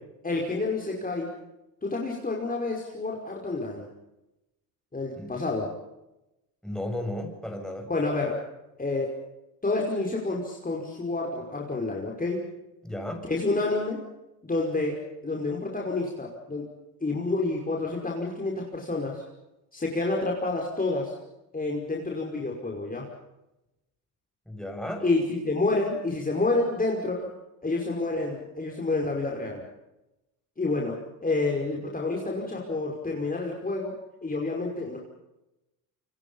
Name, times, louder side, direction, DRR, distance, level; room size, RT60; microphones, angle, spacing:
voice 1, 0.2-1.3 1.8-3.9 4.9-5.7 7.9-8.4 8.8-9.1 9.6-12.5 13.2-14.0 14.4-16.7 17.0-19.2 19.7-21.2 21.5-23.1 25.0-27.3 27.6-29.6 30.6-35.0, left 3 dB, 20° left, -1 dB, 5.4 m, -29 dB
voice 2, 6.6-7.9 12.8-13.3 24.5-25.1, left 1 dB, ahead, 3 dB, 8.0 m, -34 dB
27.5 x 24.0 x 5.6 m, 0.95 s
supercardioid pair, 85°, 43 cm